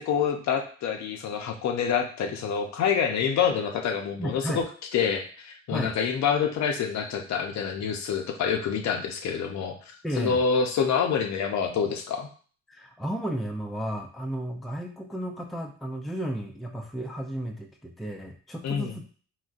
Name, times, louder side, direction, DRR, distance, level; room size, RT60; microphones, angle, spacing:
voice 1, 0.0-4.6 4.9-9.8 10.2-12.3 18.6-18.9, left 7 dB, 65° left, 5 dB, 0.6 m, -27 dB
voice 2, 4.2-4.6 5.7-5.9 10.0-10.4 12.7-19.1, right 1 dB, ahead, 2 dB, 0.4 m, -33 dB
3.9 x 2.1 x 2.4 m, 0.42 s
cardioid pair, 90°, 30 cm